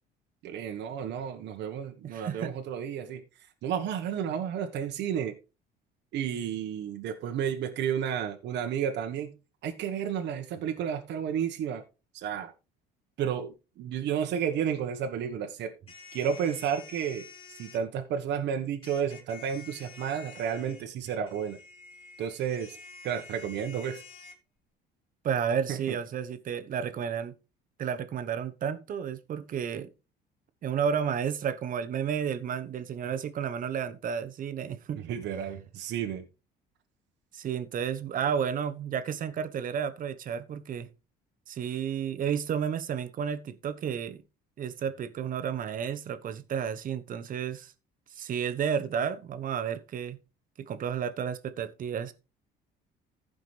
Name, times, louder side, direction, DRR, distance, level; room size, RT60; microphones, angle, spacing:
voice 1, 0.4-3.2 3.6-5.3 6.1-9.3 9.6-11.8 12.1-12.5 13.2-15.7 16.1-17.3 17.6-21.6 22.2-22.8 23.0-24.0 25.7-26.0 35.0-36.2, right 8 dB, 65° right, 1.2 m, -32 dB
voice 2, 2.0-2.5 25.2-27.3 27.8-29.9 30.6-35.0 37.3-40.9 41.5-44.2 44.6-47.7 48.1-50.2 50.7-52.1, right 7 dB, 45° right, 1.0 m, -32 dB
sound 1, 15.9-17.8 18.8-24.4, left 5 dB, 30° left, 2.3 m, -49 dB
15.0 x 5.2 x 3.3 m
cardioid pair, 115°, 19 cm